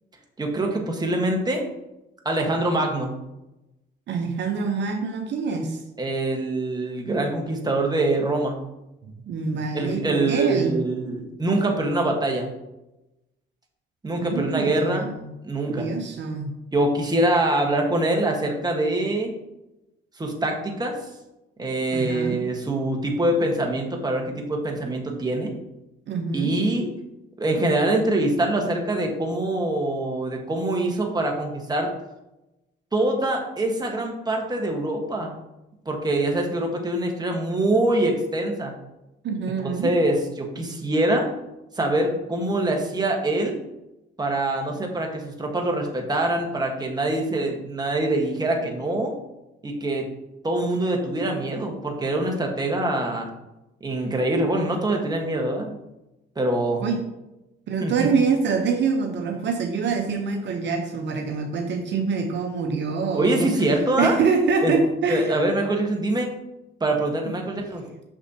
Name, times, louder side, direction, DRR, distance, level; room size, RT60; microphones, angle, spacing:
voice 1, 0.4-1.6 2.2-3.1 6.0-8.6 9.7-12.5 14.0-15.1 15.4-15.9 16.7-19.3 20.2-21.0 21.6-25.5 26.3-26.9 27.4-31.9 32.9-35.4 35.8-38.7 39.6-41.3 41.8-43.6 44.2-49.1 49.6-50.1 50.4-53.3 53.8-55.8 56.4-56.9 57.8-58.1 63.1-64.2 64.6-64.7 65.1-66.3 66.8-67.9, right 1 dB, 20° right, 1 dB, 1.3 m, -24 dB
voice 2, 4.1-5.8 9.0-10.7 14.2-15.1 15.7-16.5 21.9-22.4 26.1-26.6 39.2-39.9 56.8-57.0 57.7-63.6 64.0-65.3 67.3-67.4, right 5 dB, 65° right, 4 dB, 0.8 m, -25 dB
6.2 x 6.2 x 2.8 m, 0.95 s
cardioid pair, 90°, 20 cm